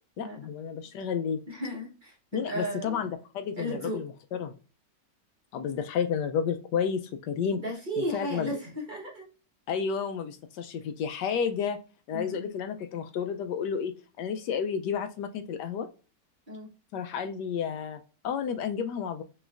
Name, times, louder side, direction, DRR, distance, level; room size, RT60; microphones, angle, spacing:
voice 1, 0.2-1.4 2.3-4.1 4.4-4.5 5.5-7.6 8.1-8.6 9.7-11.8 12.1-13.9 14.2-15.9 16.9-19.2, left 7 dB, 75° left, 7 dB, 1.2 m, -31 dB
voice 2, 1.5-3.1 3.6-4.0 7.5-9.3 12.1-12.5 16.5-16.7, equal, 30° right, -3 dB, 1.2 m, -35 dB
6.3 x 3.1 x 2.4 m, 0.35 s
omnidirectional pair, 1.9 m